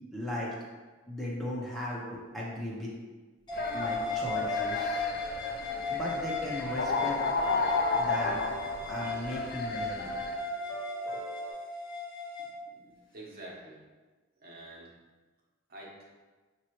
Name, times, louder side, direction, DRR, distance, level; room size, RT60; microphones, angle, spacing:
voice 1, 0.1-0.5 1.1-2.9 3.7-5.1 5.9-7.2 8.0-8.4 8.9-10.1, left 1 dB, ahead, -6 dB, 0.7 m, -36 dB
sound 1, 3.5-10.3, left 4 dB, 50° left, 0.4 m, -33 dB
sound 2, 3.5-12.5, left 3 dB, 20° left, 1.0 m, -36 dB
sound 3, 5.7-11.5, right 2 dB, 75° left, 1.1 m, -40 dB
voice 2, 12.4-13.8 14.4-14.9 15.7-16.0, right 1 dB, 50° right, -3 dB, 1.0 m, -48 dB
5.9 x 3.0 x 3.0 m, 1.3 s
head